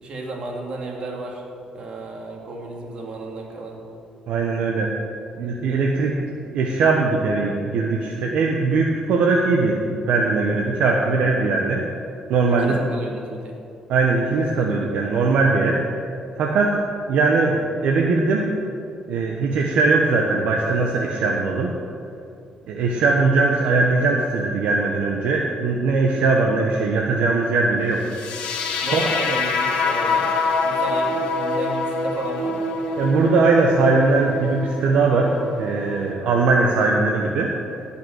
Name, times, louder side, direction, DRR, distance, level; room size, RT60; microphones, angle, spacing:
voice 1, 0.0-1.4 1.7-3.8 12.6-13.6 28.8-30.3 30.6-32.7, right 2 dB, 55° right, 0 dB, 2.3 m, -33 dB
voice 2, 4.3-4.9 5.4-6.2 6.5-11.8 12.3-12.8 13.9-15.8 16.4-16.8 17.1-18.5 19.1-21.7 22.7-28.0 28.9-29.0 33.0-37.5, right 3 dB, 80° right, 0 dB, 1.1 m, -20 dB
sound 1, 28.1-36.1, left 3 dB, 90° left, 1.4 m, -25 dB
17.0 x 5.8 x 6.5 m, 2.6 s
cardioid pair, 120°, 2 cm